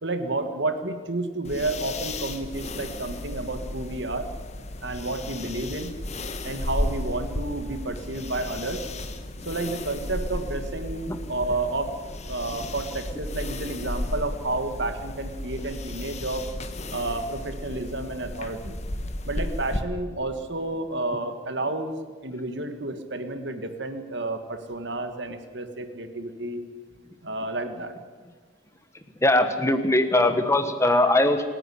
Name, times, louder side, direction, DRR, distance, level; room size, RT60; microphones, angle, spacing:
voice 1, 0.0-4.3 4.8-6.0 6.4-8.8 9.5-11.9 12.3-16.4 16.9-18.8 19.2-21.9 22.2-26.6 27.2-27.9, right 2 dB, 60° right, 8 dB, 1.8 m, -31 dB
sound 1, 1.4-19.8, left 1 dB, 35° left, 1.2 m, -34 dB
voice 2, 29.2-31.5, left 1 dB, 15° left, 9 dB, 1.3 m, -21 dB
27.0 x 10.0 x 10.0 m, 1.5 s
head